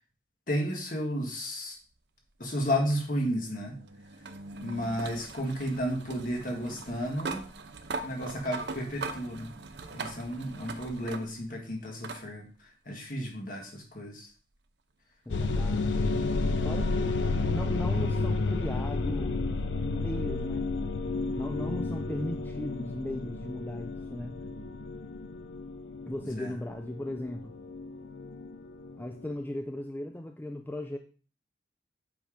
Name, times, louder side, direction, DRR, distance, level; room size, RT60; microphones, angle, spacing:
voice 1, 0.5-1.8 2.4-3.8 4.6-7.4 8.0-9.5 9.9-12.5 12.9-14.3 26.2-26.5, equal, 45° left, 1 dB, 1.6 m, -32 dB
sound 1, 2.7-11.6 12.0-12.2 13.6-13.7 16.5-16.6, right 3 dB, 70° right, 0.7 m, -41 dB
sound 2, 15.3-29.3, left 3 dB, 80° left, 0.5 m, -32 dB
voice 2, 15.3-16.1 16.6-17.1 17.4-19.5 19.8-20.7 21.4-24.4 26.1-27.5 29.0-31.0, left 1 dB, 10° left, 4 dB, 0.3 m, -37 dB
7.9 x 3.4 x 5.0 m, 0.38 s
head